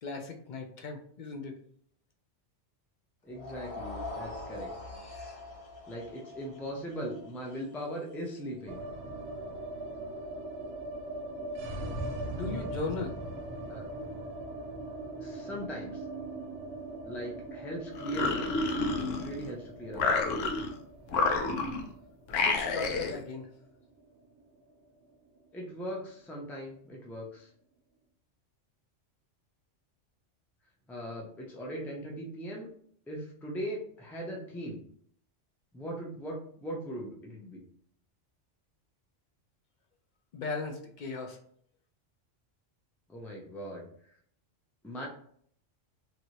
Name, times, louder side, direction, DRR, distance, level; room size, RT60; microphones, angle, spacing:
voice 1, 0.0-1.6 12.3-13.1 22.3-23.5 40.3-41.4, left 4 dB, 60° left, 3 dB, 0.5 m, -37 dB
voice 2, 3.2-4.7 5.9-8.8 13.7-13.8 15.2-16.0 17.1-18.6 19.2-20.2 25.5-27.5 30.9-32.7 33.1-34.8 35.7-37.6 43.1-43.9 44.8-45.1, equal, ahead, -1 dB, 0.4 m, -39 dB
sound 1, 3.3-9.5, left 2 dB, 30° left, 0.8 m, -44 dB
sound 2, 8.7-24.8 25.0-25.1 25.4-26.1, right 2 dB, 60° right, 0.8 m, -41 dB
sound 3, 17.9-19.5 19.9-20.8 21.1-21.9 22.3-23.2, left 3 dB, 80° left, 0.9 m, -29 dB
3.2 x 2.6 x 2.9 m, 0.62 s
omnidirectional pair, 1.3 m